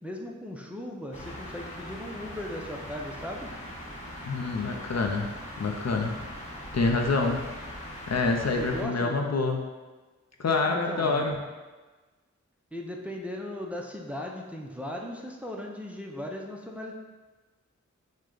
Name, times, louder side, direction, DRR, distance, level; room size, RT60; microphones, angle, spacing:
voice 1, 0.0-3.5 8.6-9.3 10.7-11.2 12.7-16.9, left 1 dB, 5° right, 0 dB, 0.6 m, -37 dB
sound 1, 1.1-8.8, equal, 25° left, 1.1 m, -41 dB
voice 2, 4.2-5.3 5.6-6.1 6.4-7.4 8.1-9.6 10.4-11.4, left 3 dB, 55° left, 2 dB, 0.6 m, -27 dB
6.3 x 2.2 x 3.9 m, 1.3 s
wide cardioid pair, 55°, 31 cm